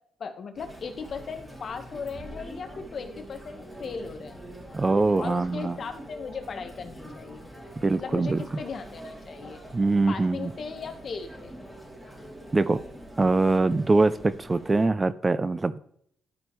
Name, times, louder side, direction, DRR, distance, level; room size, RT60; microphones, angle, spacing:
voice 1, 0.2-4.4 5.2-7.5 7.9-9.6 10.1-11.5, left 5 dB, 50° left, 7 dB, 1.3 m, -37 dB
Chatter, 0.5-14.9, right 1 dB, 10° right, 2.8 m, -44 dB
voice 2, 4.7-5.8 7.8-8.4 9.7-10.5 12.5-12.8 13.2-15.8, right 3 dB, 25° right, 15 dB, 0.4 m, -23 dB
12.5 x 5.2 x 3.2 m, 0.67 s
cardioid pair, 90°, 0 cm